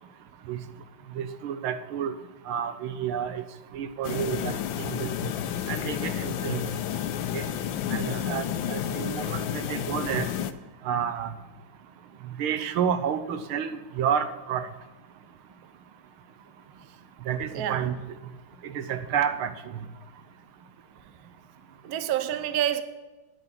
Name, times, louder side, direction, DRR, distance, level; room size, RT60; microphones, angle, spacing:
voice 1, 1.2-2.1 2.5-3.4 3.7-4.5 4.8-5.1 5.7-6.6 7.3-7.5 7.9-10.3 10.9-11.3 12.4-14.7 17.3-18.0 18.6-19.5, right 8 dB, 90° right, 1.7 m, -30 dB
sound 1, 4.0-10.5, left 10 dB, 75° left, 1.4 m, -31 dB
voice 2, 17.5-17.9 21.8-22.8, right 11 dB, 60° right, 1.1 m, -28 dB
9.6 x 9.1 x 6.0 m
omnidirectional pair, 2.3 m